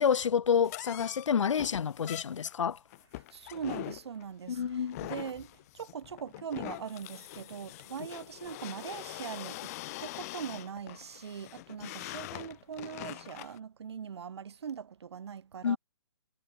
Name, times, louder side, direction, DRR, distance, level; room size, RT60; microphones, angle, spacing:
voice 1, 0.0-2.8 4.5-5.1 15.6-15.8, left 7 dB, 70° left, 0.4 m, -28 dB
sound 1, 0.6-13.6, left 18 dB, 30° left, 1.7 m, -43 dB
voice 2, 3.3-5.5 5.7-9.7 10.0-15.8, right 7 dB, 55° right, 2.1 m, -41 dB
figure-of-eight pair, 140°, 16 cm